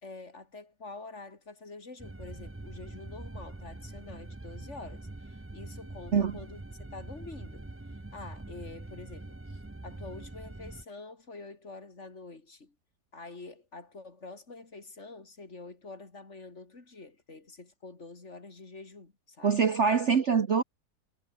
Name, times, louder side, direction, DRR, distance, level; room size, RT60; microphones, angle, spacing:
voice 1, 0.0-6.6 6.9-7.7 8.1-12.7 13.1-19.6, left 3 dB, 40° left, 3.6 m, -47 dB
sound 1, 2.0-10.8, right 2 dB, 15° right, 0.4 m, -44 dB
voice 2, 19.4-20.6, right 6 dB, 45° right, 1.3 m, -24 dB
omnidirectional pair, 1.9 m